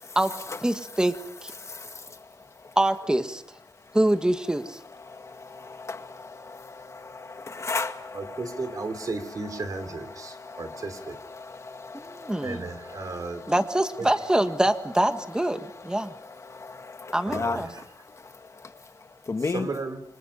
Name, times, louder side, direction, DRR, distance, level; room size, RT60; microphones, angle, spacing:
voice 1, 0.6-1.5 2.7-3.4 3.9-4.8 11.9-12.6 13.5-16.1 17.1-17.7, right 1 dB, 10° right, 1.6 m, -25 dB
voice 2, 1.6-2.3 2.6-2.8 5.0-8.4 10.2-10.8 11.3-12.5 15.6-15.7 16.0-17.6 18.1-18.7 19.0-19.7, left 3 dB, 40° left, 2.1 m, -35 dB
voice 3, 8.1-11.2 12.4-13.5 14.0-14.1 17.2-17.9 19.4-20.0, right 3 dB, 50° right, 3.2 m, -34 dB
29.0 x 25.0 x 5.6 m
wide cardioid pair, 130°, 8 cm